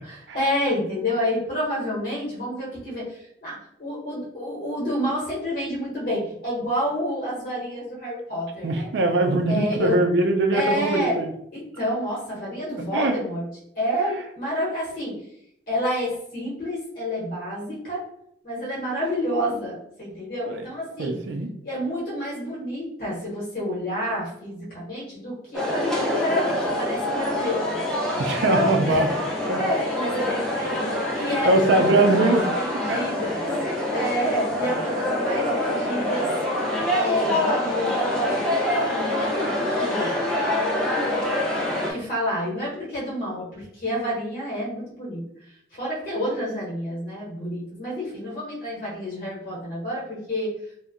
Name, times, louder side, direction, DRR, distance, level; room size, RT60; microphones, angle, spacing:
voice 1, 0.0-8.9 9.5-10.0 10.5-11.2 11.5-13.5 13.7-15.2 15.7-18.0 18.4-21.2 21.6-27.6 28.5-29.1 29.5-33.5 33.9-36.3 37.0-40.2 41.7-45.2 45.7-50.5, equal, 45° left, -6 dB, 0.9 m, -29 dB
voice 2, 8.6-11.3 12.9-13.1 20.5-20.6 21.0-21.5 28.2-29.1 29.5-29.6 30.7-31.0 31.4-32.4 32.9-33.0, right 2 dB, 65° right, 5 dB, 0.4 m, -21 dB
sound 1, 25.5-41.9, left 1 dB, 5° left, 0.5 m, -25 dB
2.6 x 2.1 x 2.5 m, 0.72 s
head